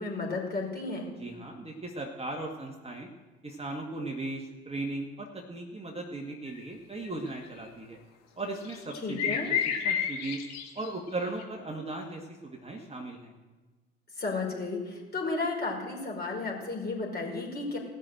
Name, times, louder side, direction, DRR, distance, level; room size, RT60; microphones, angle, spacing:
voice 1, 0.0-1.1 9.0-9.5 14.2-17.8, left 3 dB, 30° left, -1 dB, 5.0 m, -33 dB
voice 2, 1.2-3.1 3.4-8.0 8.4-9.6 9.8-10.4 10.7-13.3, right 2 dB, 20° right, 1 dB, 2.1 m, -37 dB
sound 1, 6.5-6.7 7.1-7.3 8.6-11.4, left 7 dB, 60° left, 1.8 m, -30 dB
18.0 x 6.5 x 7.9 m, 1.3 s
figure-of-eight pair, 50°, 31 cm